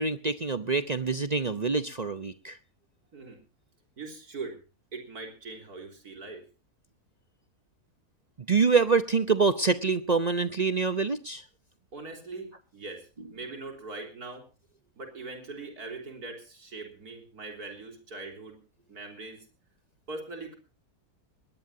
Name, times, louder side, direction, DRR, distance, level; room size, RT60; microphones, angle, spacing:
voice 1, 0.0-2.6 8.5-11.4, right 4 dB, 35° right, 11 dB, 0.7 m, -25 dB
voice 2, 4.0-4.6 4.9-6.5 11.9-14.5 15.0-18.6 18.9-19.5 20.1-20.6, right 3 dB, 85° right, 3 dB, 4.2 m, -41 dB
20.5 x 18.5 x 2.8 m, 0.34 s
omnidirectional pair, 1.6 m